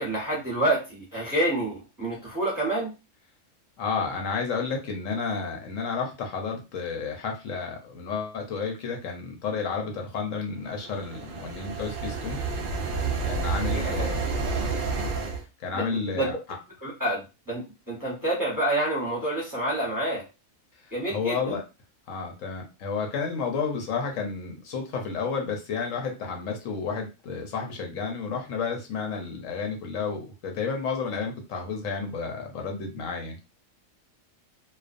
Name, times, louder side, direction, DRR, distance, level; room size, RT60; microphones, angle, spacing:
voice 1, 0.0-2.9 13.7-14.1 15.7-16.3 16.8-20.2 20.9-21.6, right 1 dB, 20° right, -5 dB, 0.6 m, -28 dB
voice 2, 3.8-12.4 13.2-14.2 14.9-15.2 15.6-16.3 21.1-21.6 22.1-33.4, left 5 dB, 75° left, 3 dB, 1.0 m, -31 dB
sound 1, 10.7-15.4, right 4 dB, 80° right, 0.4 m, -29 dB
2.4 x 2.2 x 2.4 m, 0.29 s
omnidirectional pair, 1.4 m